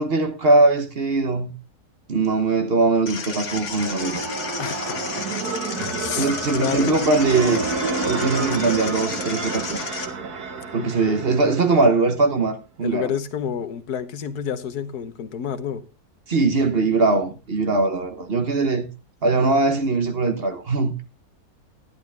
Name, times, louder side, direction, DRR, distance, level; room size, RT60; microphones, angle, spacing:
voice 1, 0.0-1.5 2.1-4.3 6.1-7.6 7.9-9.9 10.7-13.1 16.3-18.9 19.2-20.9, right 3 dB, 40° right, 1.2 m, -21 dB
sound 1, 3.1-10.1, left 5 dB, 55° left, 1.5 m, -33 dB
sound 2, 3.3-12.1, right 3 dB, 85° right, 2.0 m, -29 dB
voice 2, 4.6-5.3 5.7-7.0 10.8-11.2 12.8-15.8, left 8 dB, 80° left, 1.5 m, -30 dB
12.0 x 10.5 x 3.4 m
omnidirectional pair, 1.6 m